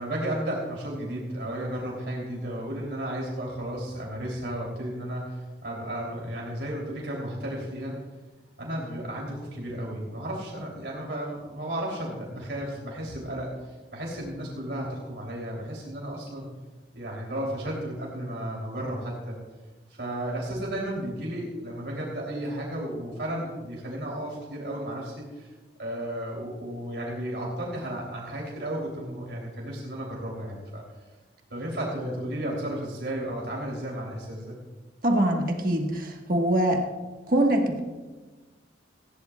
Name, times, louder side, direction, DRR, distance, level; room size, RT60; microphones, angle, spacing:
voice 1, 0.0-8.0 8.6-16.5 16.9-19.4 20.0-25.5 25.8-30.8 31.5-34.6, right 1 dB, 70° right, -3 dB, 3.3 m, -33 dB
voice 2, 35.0-36.8 37.3-37.8, right 1 dB, 50° right, 1 dB, 1.5 m, -23 dB
18.5 x 16.0 x 2.4 m, 1.3 s
head